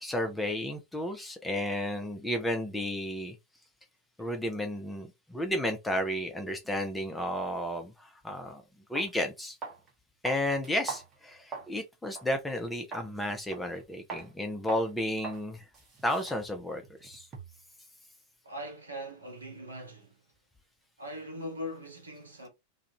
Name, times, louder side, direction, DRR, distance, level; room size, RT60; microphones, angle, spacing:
voice 1, 0.0-3.4 4.2-8.6 8.9-9.6 10.2-15.7 16.0-17.3, left 1 dB, 5° left, 0.5 m, -32 dB
sound 1, 8.4-8.5 8.9-9.1 9.6-9.9 10.2-11.8 12.1-12.3 12.9-13.1 13.5-13.8 14.1-14.3 14.7-14.9 15.2-15.4 15.7-17.7, right 5 dB, 20° right, 0.9 m, -42 dB
voice 2, 18.4-20.2 21.0-22.5, equal, 75° right, 1.0 m, -41 dB
2.4 x 2.1 x 2.8 m
figure-of-eight pair, 90°, 0 cm